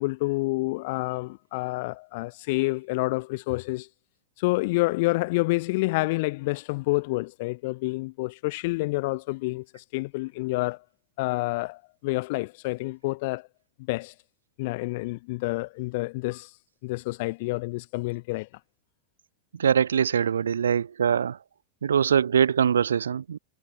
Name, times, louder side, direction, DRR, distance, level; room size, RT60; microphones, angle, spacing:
voice 1, 0.0-3.9 4.4-10.8 11.2-13.5 13.9-14.1 14.6-18.5, left 23 dB, 50° left, 0.8 m, -28 dB
voice 2, 19.6-21.4 21.8-23.4, right 7 dB, 70° right, 1.0 m, -23 dB
figure-of-eight pair, 90°, 0 cm